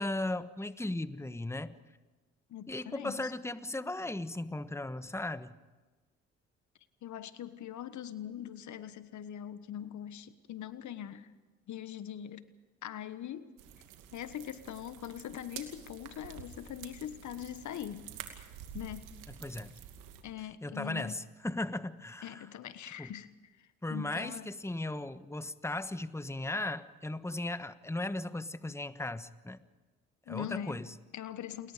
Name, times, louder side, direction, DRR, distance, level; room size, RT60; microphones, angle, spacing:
voice 1, 0.0-1.7 2.7-5.6 19.4-19.7 20.6-22.5 23.0-23.1 23.8-29.6 30.3-30.9, left 2 dB, 10° left, 12 dB, 1.3 m, -37 dB
voice 2, 2.5-3.3 7.0-11.3 11.7-12.5 12.8-13.5 14.1-18.1 18.7-19.1 20.2-21.2 22.2-24.5 30.3-30.8 31.1-31.7, left 10 dB, 65° left, 13 dB, 1.4 m, -42 dB
sound 1, 13.6-20.2, right 9 dB, 85° right, 2.5 m, -49 dB
29.5 x 22.0 x 5.1 m, 1.2 s
hypercardioid pair, 50°, 31 cm